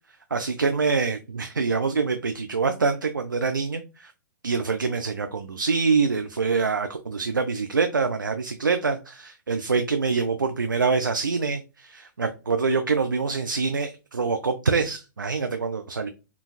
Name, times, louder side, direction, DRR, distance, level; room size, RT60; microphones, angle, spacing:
voice 1, 0.3-4.1 4.4-16.1, right 4 dB, 90° right, 7 dB, 0.4 m, -25 dB
3.8 x 2.3 x 2.3 m, 0.30 s
figure-of-eight pair, 115°, 10 cm